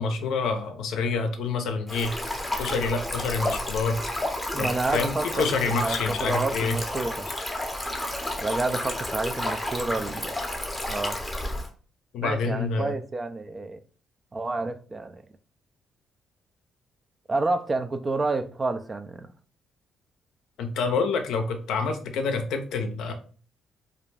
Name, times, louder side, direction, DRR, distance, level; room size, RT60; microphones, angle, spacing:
voice 1, 0.0-2.1 2.6-4.0 4.6-6.8 12.1-12.9 20.6-23.1, left 4 dB, 80° left, 0.5 m, -27 dB
Stream, 1.9-11.7, left 1 dB, 10° left, 0.6 m, -31 dB
voice 2, 4.5-7.3 8.4-10.4 10.9-11.2 12.2-13.8 14.3-15.2 17.3-19.3, right 3 dB, 30° right, 0.3 m, -29 dB
2.4 x 2.1 x 3.2 m
cardioid pair, 90°, 0 cm